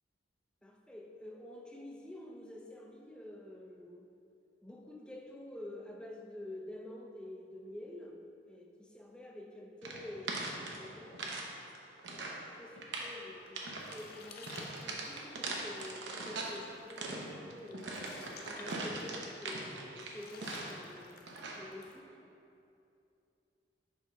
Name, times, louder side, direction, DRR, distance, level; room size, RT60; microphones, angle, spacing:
voice 1, 0.6-4.1 4.6-11.5 12.1-18.0 18.5-22.3, left 1 dB, 5° left, 0 dB, 0.4 m, -48 dB
sound 1, 9.8-11.5 11.8-12.4 12.8-13.2 13.5-14.0 14.5-16.6 16.9-20.9 21.3-21.7, right 2 dB, 80° right, 0.7 m, -41 dB
sound 2, 13.1-22.0, left 4 dB, 55° left, 0.6 m, -54 dB
5.0 x 3.8 x 5.5 m, 2.7 s
head